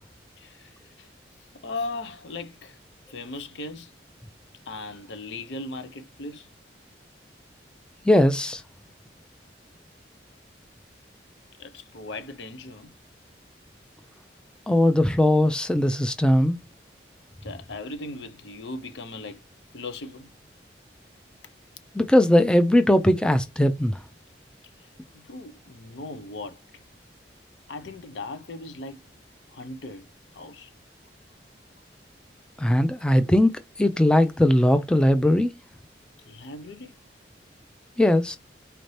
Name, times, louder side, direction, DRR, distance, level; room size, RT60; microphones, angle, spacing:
voice 1, 0.4-1.1 1.6-2.8 3.1-3.9 4.7-6.5 11.6-12.9 17.4-19.4 19.7-20.3 25.1-26.6 27.7-29.0 29.5-30.1 30.3-30.7 36.3-37.0, left 2 dB, 80° left, 0.7 m, -38 dB
voice 2, 8.1-8.6 14.7-16.6 21.9-24.0 32.6-35.5 38.0-38.4, left 1 dB, 5° left, 0.4 m, -19 dB
4.2 x 2.7 x 3.2 m
head